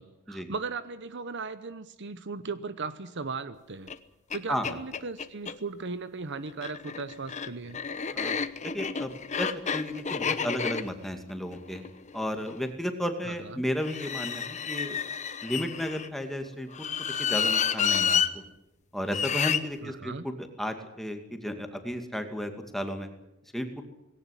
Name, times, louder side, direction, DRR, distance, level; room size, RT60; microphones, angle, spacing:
voice 1, 0.0-3.9 4.3-7.8 13.2-13.6 19.8-20.2, right 4 dB, 55° right, 13 dB, 0.9 m, -37 dB
sound 1, 3.9-4.0 4.3-4.4 4.6-5.6 6.5-12.6 13.8-16.1 16.7-18.3 19.1-19.6, left 7 dB, 35° left, 1.0 m, -30 dB
voice 2, 8.6-9.1 9.4-11.8 12.1-15.0 15.4-18.4 18.9-23.1 23.5-23.8, equal, ahead, 6 dB, 2.3 m, -33 dB
19.0 x 17.5 x 10.0 m, 0.92 s
head